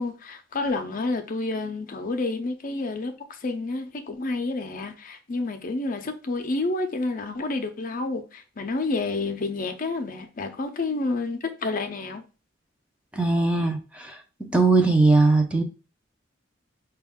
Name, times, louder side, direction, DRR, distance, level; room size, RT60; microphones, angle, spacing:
voice 1, 0.0-12.2, left 3 dB, 45° left, 0.5 m, -29 dB
voice 2, 13.1-14.2 14.5-15.6, right 3 dB, 5° right, 0.6 m, -20 dB
5.2 x 2.3 x 3.5 m
head